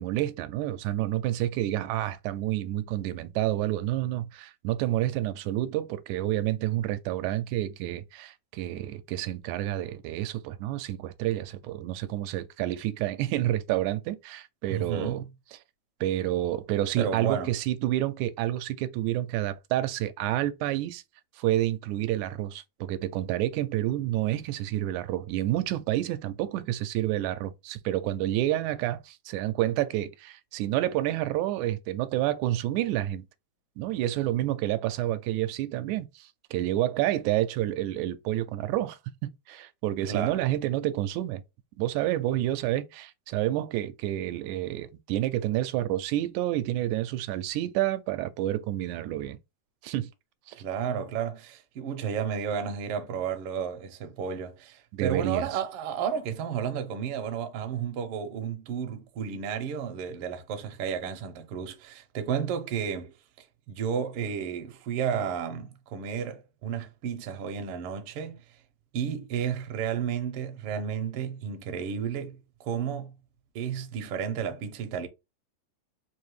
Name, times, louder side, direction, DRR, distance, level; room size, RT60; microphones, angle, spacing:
voice 1, 0.0-15.2 16.0-21.0 21.4-33.3 33.8-41.4 41.8-49.4 49.8-50.1 50.5-50.6 54.9-55.5, right 14 dB, 85° right, 2.0 m, -29 dB
voice 2, 14.7-15.3 17.0-17.5 40.1-40.4 50.5-63.1 63.7-68.4 68.9-73.1 73.5-75.1, right 7 dB, 70° right, 1.4 m, -32 dB
4.7 x 2.8 x 3.1 m
omnidirectional pair, 3.3 m